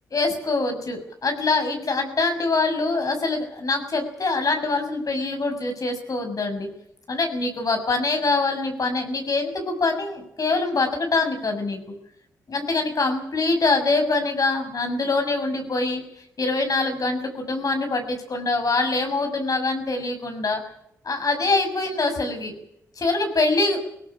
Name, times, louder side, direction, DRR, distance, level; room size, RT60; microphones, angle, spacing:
voice 1, 0.1-6.7 7.1-11.8 12.5-16.0 16.4-20.6 21.0-22.5 23.0-23.8, left 3 dB, 55° left, 6 dB, 6.5 m, -24 dB
20.0 x 17.5 x 9.9 m, 0.76 s
supercardioid pair, 45°, 7 cm